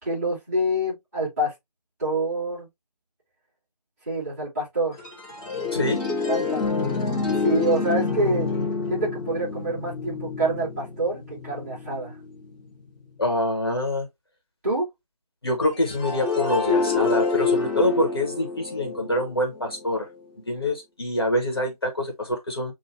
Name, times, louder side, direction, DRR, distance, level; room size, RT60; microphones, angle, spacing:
voice 1, 0.0-1.5 2.0-2.7 4.0-5.0 6.3-6.8 7.4-8.5 8.9-12.1 14.6-14.9, right 1 dB, 25° right, 3.0 m, -26 dB
sound 1, 5.0-12.6 15.8-19.9, left 4 dB, 10° left, 1.3 m, -27 dB
voice 2, 5.7-6.0 13.2-14.1 15.4-20.1 20.5-22.7, left 1 dB, 35° left, 1.0 m, -25 dB
6.9 x 2.5 x 2.7 m
figure-of-eight pair, 165°, 21 cm